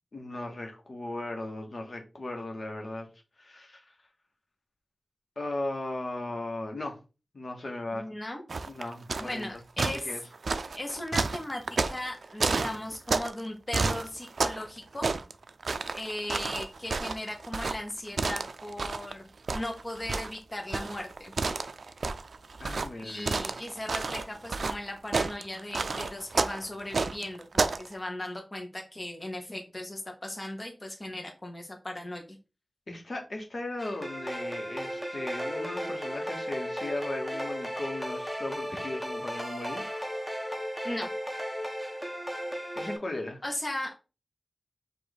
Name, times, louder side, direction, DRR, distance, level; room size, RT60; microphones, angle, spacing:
voice 1, 0.1-3.1 3.4-3.8 5.4-7.0 7.3-8.1 8.7-9.5 10.0-10.2 22.6-23.5 32.9-39.8 42.8-43.4, left 2 dB, 60° left, 1.1 m, -37 dB
voice 2, 7.9-8.4 9.2-10.2 10.7-11.6 11.9-15.1 15.9-19.2 19.5-21.3 23.0-32.2 40.8-41.1 43.4-43.9, left 1 dB, 30° left, 0.9 m, -37 dB
sound 1, 8.5-9.4 9.8-13.4 13.7-14.7 14.9-19.1 19.5-27.9, right 4 dB, 90° right, 0.3 m, -30 dB
sound 2, 33.8-43.0, equal, ahead, 0.9 m, -35 dB
4.9 x 2.5 x 4.0 m
wide cardioid pair, 80°, 0 cm